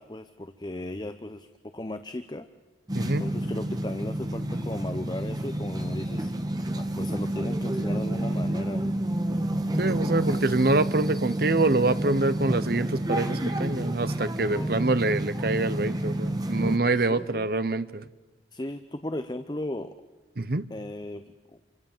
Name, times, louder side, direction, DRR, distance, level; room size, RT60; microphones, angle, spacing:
voice 1, 0.0-1.5 1.7-2.5 3.0-6.3 6.7-8.9 14.5-14.8 17.0-17.5 18.5-19.9 20.7-21.2, left 1 dB, 25° left, 10 dB, 0.8 m, -36 dB
sound 1, 2.9-16.8, right 1 dB, 20° right, 1.6 m, -29 dB
voice 2, 2.9-3.2 9.8-18.1 20.4-20.7, right 2 dB, 55° right, 13 dB, 0.9 m, -25 dB
28.0 x 24.5 x 7.4 m, 1.2 s
head